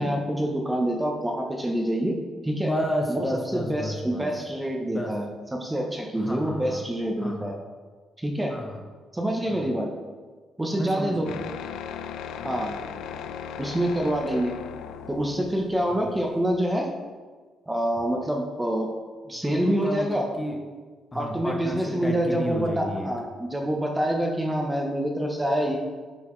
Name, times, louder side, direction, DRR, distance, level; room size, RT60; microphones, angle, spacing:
voice 1, 0.0-2.2 2.4-2.7 3.1-3.2 3.5-5.3 5.5-7.6 8.2-8.6 9.1-9.9 10.6-11.3 12.4-12.8 13.6-14.5 15.1-16.9 17.7-18.9 19.3-20.2 21.1-25.8, right 1 dB, 15° right, 1 dB, 1.0 m, -26 dB
voice 2, 2.7-4.3 4.8-5.1 6.1-6.8 7.2-7.5 8.5-8.8 9.4-9.7 10.7-11.4 11.7-11.8 12.4-12.7 15.9-16.0 19.4-20.6 21.1-23.1, equal, 20° left, 1 dB, 1.1 m, -32 dB
sound 1, 11.3-16.7, left 8 dB, 85° left, 0.4 m, -38 dB
9.6 x 5.4 x 3.3 m, 1.4 s
cardioid pair, 90°, 0 cm